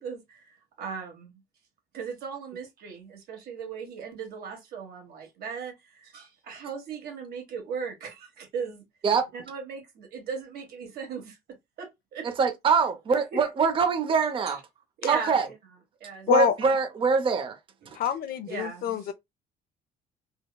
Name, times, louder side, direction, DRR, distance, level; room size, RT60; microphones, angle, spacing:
voice 1, 0.0-1.4 1.9-8.8 9.3-11.4 11.8-12.3 13.3-13.4 14.5-14.6 15.0-15.4 16.0-16.3 18.5-19.1, right 6 dB, 65° right, 1.4 m, -37 dB
voice 2, 12.2-14.6 15.1-15.5 16.3-17.6 17.9-18.0, right 5 dB, 30° right, 0.6 m, -24 dB
voice 3, 17.9-19.1, left 8 dB, 60° left, 0.4 m, -26 dB
3.4 x 2.1 x 2.2 m
cardioid pair, 110°, 17 cm